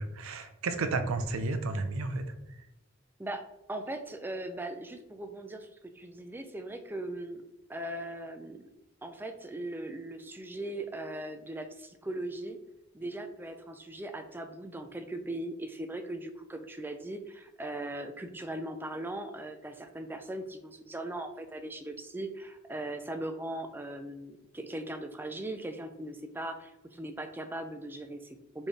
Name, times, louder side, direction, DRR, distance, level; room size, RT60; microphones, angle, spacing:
voice 1, 0.0-2.2, right 3 dB, 80° right, 8 dB, 0.5 m, -32 dB
voice 2, 3.7-7.4 7.7-8.6 9.0-12.6 12.9-28.7, right 1 dB, 10° right, 7 dB, 0.3 m, -39 dB
4.3 x 3.2 x 3.3 m, 0.93 s
head